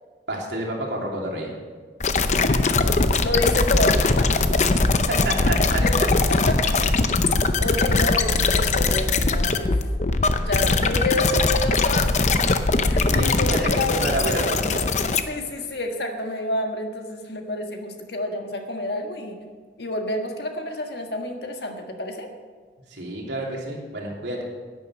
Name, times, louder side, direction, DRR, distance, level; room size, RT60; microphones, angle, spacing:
voice 1, 0.3-1.5 5.1-5.8 6.2-6.3 6.8-6.9 13.1-14.8 22.9-24.4, right 1 dB, 90° right, -2 dB, 3.0 m, -29 dB
sound 1, 2.0-15.2, left 3 dB, 40° left, 0.6 m, -21 dB
voice 2, 2.7-4.6 5.8-6.8 7.6-9.8 10.4-12.3 12.8-14.0 15.3-19.4 19.8-22.3, left 1 dB, 70° left, 3 dB, 1.6 m, -29 dB
10.5 x 10.0 x 6.4 m, 1.5 s
head